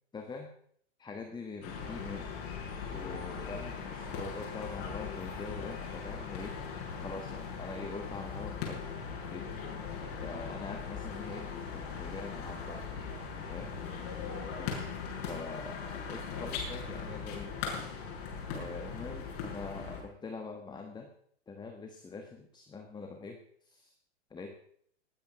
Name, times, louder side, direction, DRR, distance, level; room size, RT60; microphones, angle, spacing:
voice 1, 0.1-0.5 1.0-2.3 2.9-6.6 7.0-8.9 9.3-9.6 10.2-12.8 13.2-13.8 14.6-14.9 15.3-17.5 18.5-21.1 21.5-23.9 24.3-24.5, left 4 dB, 10° left, 5 dB, 1.4 m, -44 dB
sound 1, 1.6-20.0, left 5 dB, 55° left, 6.8 m, -39 dB
19.5 x 8.8 x 6.3 m, 0.64 s
hypercardioid pair, 130°, 35 cm